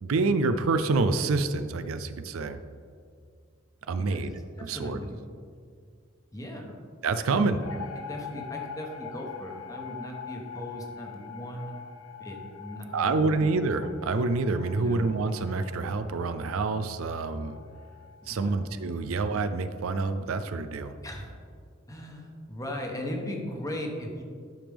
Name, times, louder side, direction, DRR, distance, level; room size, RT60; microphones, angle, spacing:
voice 1, 0.0-2.6 3.9-4.3 4.7-5.0 7.0-7.6 12.9-17.6 18.3-21.0, right 3 dB, 90° right, 10 dB, 0.5 m, -27 dB
voice 2, 4.6-5.2 6.3-6.8 7.3-7.6 8.0-11.7 12.2-13.4 14.8-15.0 18.2-18.6 19.0-19.1 21.0-21.3 21.9-24.2, left 1 dB, 15° left, 1 dB, 1.1 m, -38 dB
sound 1, 7.6-18.8, left 7 dB, 80° left, 0.7 m, -44 dB
12.0 x 5.1 x 3.5 m, 2.2 s
head